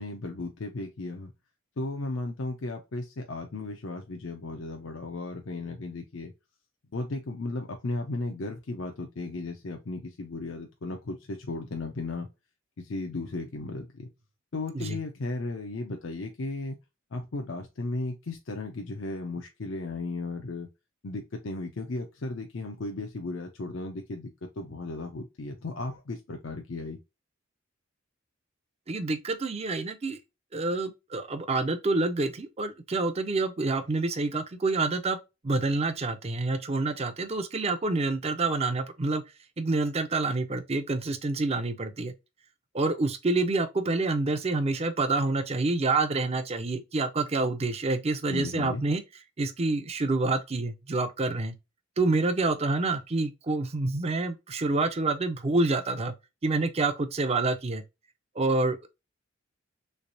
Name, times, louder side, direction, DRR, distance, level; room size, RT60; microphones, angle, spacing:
voice 1, 0.0-1.3 1.8-6.3 6.9-12.3 12.8-14.1 14.5-16.8 17.1-20.7 21.0-24.3 24.6-27.0 48.3-48.8, left 2 dB, 65° left, 0.6 m, -35 dB
voice 2, 28.9-30.2 30.5-35.2 35.4-39.2 39.6-42.1 42.7-49.0 49.4-51.5 52.0-56.1 56.4-57.8 58.4-58.9, right 3 dB, 30° right, 0.5 m, -27 dB
3.3 x 3.2 x 2.5 m
head